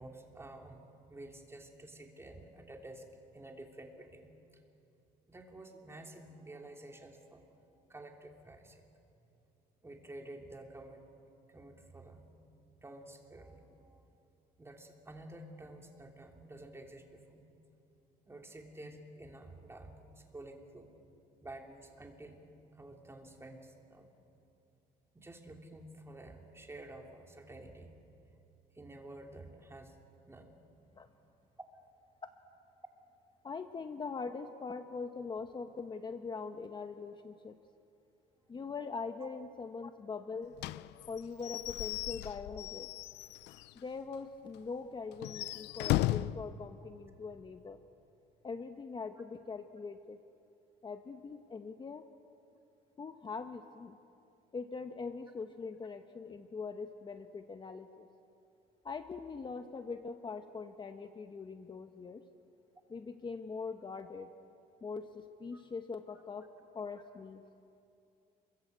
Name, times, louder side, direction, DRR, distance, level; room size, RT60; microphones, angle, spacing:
voice 1, 0.0-4.4 5.3-8.8 9.8-11.0 11.5-12.3 12.8-14.1 14.6-17.4 18.3-20.9 21.4-22.4 22.7-24.1 25.1-27.9 28.7-29.9 30.3-30.6 39.2-39.3 65.5-65.6, right 1 dB, 15° right, 2 dB, 3.4 m, -51 dB
voice 2, 33.4-37.6 38.5-40.5 41.1-42.9 43.7-47.8 48.4-50.2 50.8-52.1 53.0-54.0 54.5-58.1 58.8-62.2 62.9-64.3 64.8-66.5 66.7-67.4, left 4 dB, 25° left, 7 dB, 1.0 m, -42 dB
Slam / Squeak / Wood, 40.6-43.8 44.1-44.2 44.5-44.6 45.1-46.4, left 16 dB, 90° left, 0.6 m, -36 dB
29.5 x 23.0 x 8.1 m, 2.7 s
cardioid pair, 110°, 17 cm